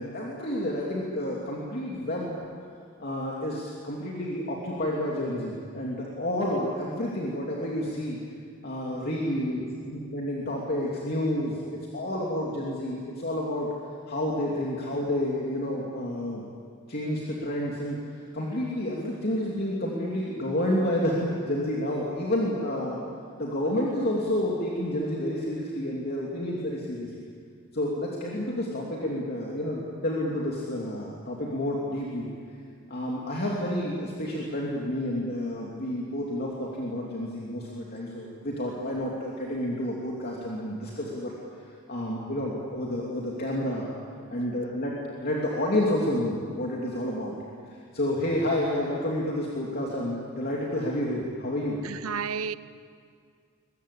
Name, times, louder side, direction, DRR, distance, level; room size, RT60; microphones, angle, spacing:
voice 1, 0.0-2.4 3.0-8.2 8.6-13.7 14.1-16.4 16.9-18.0 18.3-23.0 23.4-27.1 27.7-32.3 32.9-41.3 41.9-43.9 44.3-47.3 47.9-51.8, left 1 dB, 45° left, 3.0 m, -30 dB
voice 2, 51.8-52.5, right 6 dB, 85° right, 0.8 m, -31 dB
23.0 x 22.0 x 8.5 m
head